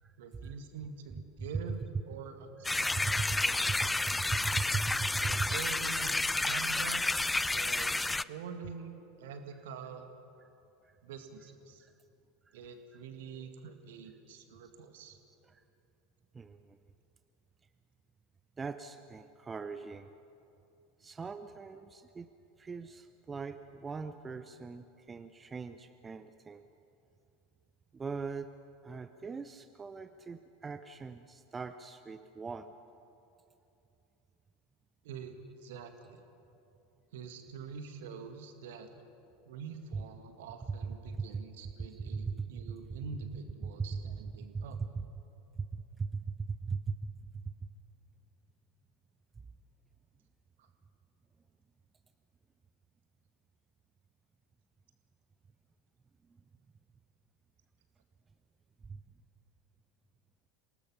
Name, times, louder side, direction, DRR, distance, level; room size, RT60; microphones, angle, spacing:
voice 1, 0.2-3.0 3.3-3.8 5.2-7.0 7.5-10.1 11.0-11.9 12.5-15.2 35.0-36.2 37.1-38.9 39.5-44.8 50.6-50.7, right 6 dB, 60° right, 7 dB, 1.9 m, -46 dB
sound 1, 2.6-8.2, left 2 dB, 10° left, 0.4 m, -30 dB
voice 2, 2.9-3.8 4.1-5.6 10.8-10.9 11.8-11.9 12.5-12.6 12.9-13.0 15.4-15.6 16.3-16.8 18.6-20.1 21.0-22.3 22.6-26.6 27.9-28.5 28.8-32.7 39.9-40.0 40.7-40.8 41.1-43.0 43.6-45.0 45.6-47.1 47.4-47.5 58.8-59.0, right 4 dB, 20° right, 10 dB, 0.7 m, -39 dB
27.5 x 18.5 x 5.7 m, 2.8 s
figure-of-eight pair, 80°, 0 cm